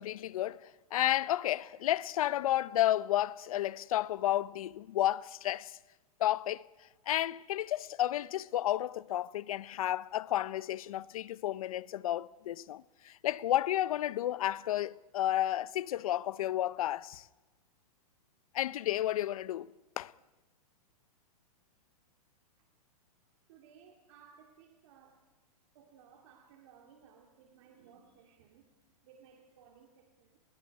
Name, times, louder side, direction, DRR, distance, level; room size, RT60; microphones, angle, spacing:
voice 1, 0.0-5.8 6.2-6.6 7.1-17.3 18.5-20.1, left 13 dB, 65° left, 0.6 m, -32 dB
voice 2, 23.5-25.4 25.7-30.4, right 7 dB, 50° right, 2.3 m, -60 dB
28.5 x 21.0 x 4.7 m
hypercardioid pair, 150°, 19 cm